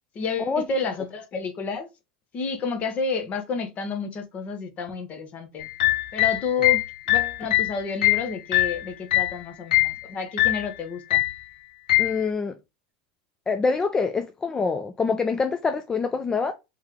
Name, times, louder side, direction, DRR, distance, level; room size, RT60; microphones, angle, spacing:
voice 1, 0.1-1.9 2.3-5.7 6.1-11.2, left 5 dB, 35° left, 1.0 m, -30 dB
sound 1, 5.6-9.4 9.7-10.0 10.4-10.7 11.1-11.4 11.9-12.2, left 17 dB, 90° left, 0.6 m, -22 dB
voice 2, 12.0-12.6 13.5-16.5, left 4 dB, 20° left, 0.4 m, -25 dB
3.3 x 3.1 x 3.7 m
supercardioid pair, 115°, 4 cm